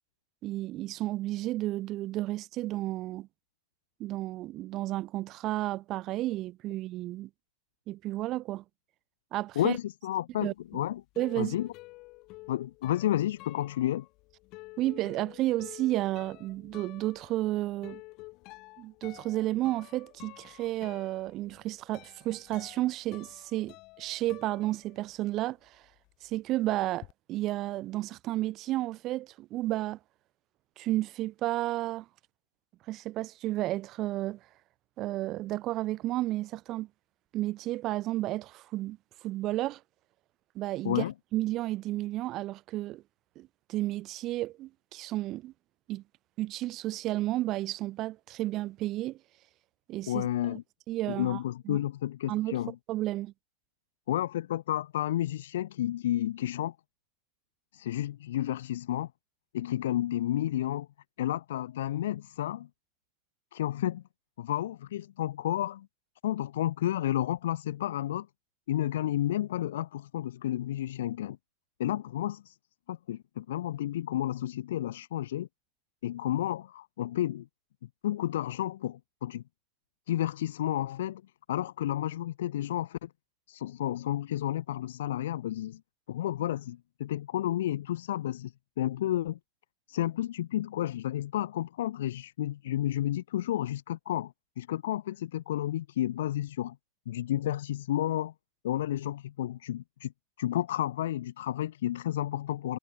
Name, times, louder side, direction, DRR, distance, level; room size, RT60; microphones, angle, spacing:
voice 1, 0.4-3.3 4.0-7.3 7.9-8.6 9.3-9.8 10.4-10.5 11.2-11.6 14.8-18.0 18.8-25.8 26.2-30.0 30.8-32.0 32.9-34.4 35.0-36.9 37.3-39.0 39.2-39.8 40.5-41.0 41.3-43.0 43.4-45.5 45.9-46.0 46.4-49.2 49.9-50.6 50.9-51.4 51.6-51.8 52.3-52.6 52.9-53.3, right 16 dB, 35° right, 1.2 m, -32 dB
voice 2, 9.6-11.0 11.4-11.7 12.5-14.1 40.8-41.1 50.1-50.6 51.1-52.8 54.1-56.8 57.7-59.1 59.5-60.9 61.2-62.7 63.5-64.0 64.4-65.9 66.2-68.3 68.7-71.4 71.8-72.6 72.9-75.5 76.0-77.5 78.0-79.4 80.1-81.2 81.5-83.1 83.5-85.8 86.1-89.4 89.9-96.8 97.1-98.3 98.6-100.1 100.4-102.8, left 13 dB, 60° left, 0.6 m, -31 dB
sound 1, 10.6-25.4 25.7-27.1, left 23 dB, 40° left, 6.6 m, -51 dB
figure-of-eight pair, 90°, 0 cm